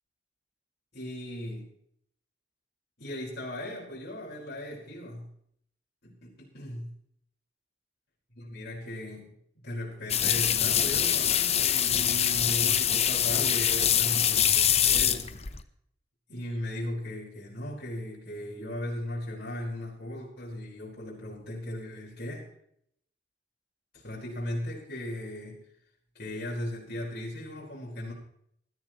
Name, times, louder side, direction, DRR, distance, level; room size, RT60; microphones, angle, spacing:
voice 1, 0.9-1.7 3.0-5.3 6.0-6.9 8.3-9.3 9.6-15.3 16.3-22.5 23.9-25.6 26.1-28.1, left 1 dB, 60° left, -6 dB, 4.9 m, -37 dB
sound 1, 10.1-15.6, left 9 dB, 35° left, 0.9 m, -24 dB
20.5 x 13.0 x 3.1 m, 0.68 s
head